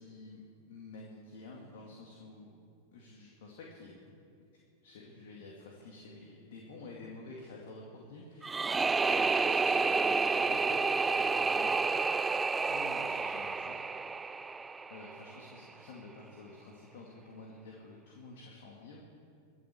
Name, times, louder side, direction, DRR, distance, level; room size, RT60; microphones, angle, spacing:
voice 1, 0.0-2.6 2.9-4.2 4.8-11.8 12.6-13.8 14.9-19.0, left 3 dB, 60° left, -2 dB, 2.4 m, -49 dB
sound 1, 8.4-15.4, right 4 dB, 15° right, 0.4 m, -30 dB
23.0 x 8.0 x 7.0 m, 2.4 s
figure-of-eight pair, 90°, 0 cm